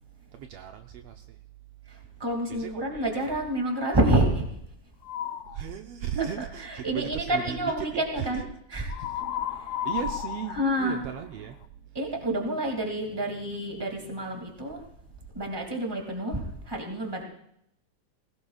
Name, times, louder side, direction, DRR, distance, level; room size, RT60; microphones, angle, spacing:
voice 1, 0.3-1.4 2.5-3.1 5.4-8.4 9.8-11.6, right 9 dB, 90° right, 5 dB, 1.3 m, -36 dB
voice 2, 1.9-4.5 6.4-8.4 8.7-9.0 9.5-9.9 10.5-11.0 11.9-14.8 15.3-17.2, right 1 dB, 10° right, 1 dB, 1.8 m, -28 dB
sound 1, 5.0-5.6 8.9-11.7, left 10 dB, 75° left, 1.4 m, -33 dB
20.5 x 17.5 x 2.4 m, 0.75 s
omnidirectional pair, 3.6 m